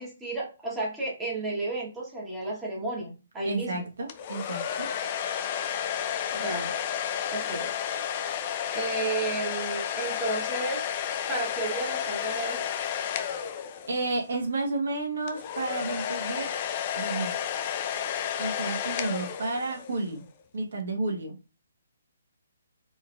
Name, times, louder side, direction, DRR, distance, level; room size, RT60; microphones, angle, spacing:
voice 1, 0.0-3.9 6.3-6.7 7.3-7.7 8.7-10.8 11.3-12.7, right 2 dB, 10° right, -5 dB, 1.3 m, -32 dB
voice 2, 3.4-4.9 13.9-16.5 17.0-17.3 18.4-20.2 20.5-21.4, right 3 dB, 70° right, 2 dB, 1.4 m, -31 dB
sound 1, 4.1-14.2 15.3-20.0, left 9 dB, 35° left, 0.4 m, -32 dB
4.2 x 3.3 x 2.5 m, 0.30 s
hypercardioid pair, 155°, 0 cm